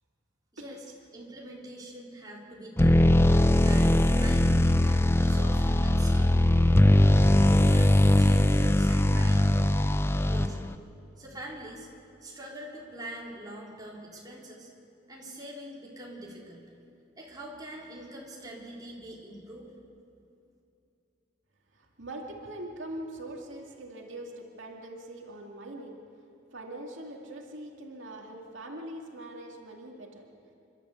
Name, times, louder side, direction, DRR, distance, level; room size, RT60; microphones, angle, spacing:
voice 1, 0.5-0.8 1.1-3.1 3.6-6.4 7.1-9.6 10.2-10.7 11.2-11.9 12.2-14.7 15.1-16.6 17.2-19.7, right 1 dB, 20° right, -4 dB, 3.8 m, -43 dB
sound 1, 2.8-10.7, left 1 dB, 15° left, 0.5 m, -21 dB
voice 2, 21.7-26.0 26.5-30.2, right 1 dB, 80° right, 0 dB, 2.3 m, -42 dB
28.0 x 12.0 x 8.2 m, 2.7 s
head